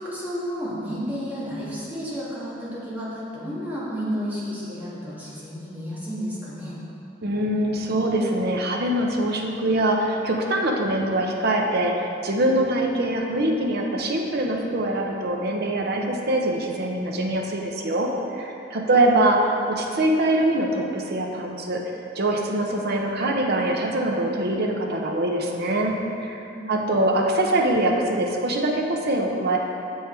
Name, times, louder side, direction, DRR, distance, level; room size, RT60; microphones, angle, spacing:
voice 1, 0.0-6.8 18.9-19.1 26.5-26.9, equal, 10° right, -9 dB, 1.8 m, -32 dB
voice 2, 7.2-11.9 12.2-21.8 22.1-26.4 26.7-29.6, right 1 dB, 55° right, 0 dB, 0.8 m, -23 dB
7.4 x 5.6 x 4.4 m, 2.8 s
head